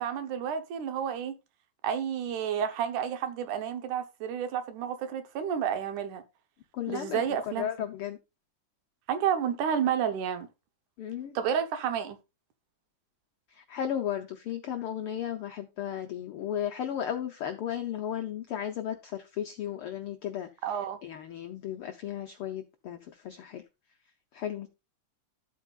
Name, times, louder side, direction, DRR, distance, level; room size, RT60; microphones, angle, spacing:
voice 1, 0.0-1.4 1.8-6.2 6.9-7.7 9.1-10.5 11.4-12.2 20.6-21.0, right 8 dB, 80° right, 2.5 m, -30 dB
voice 2, 6.7-8.2 11.0-11.4 13.5-20.5 21.0-23.6 24.3-24.7, left 10 dB, 85° left, 1.2 m, -35 dB
12.5 x 8.4 x 2.4 m
omnidirectional pair, 3.5 m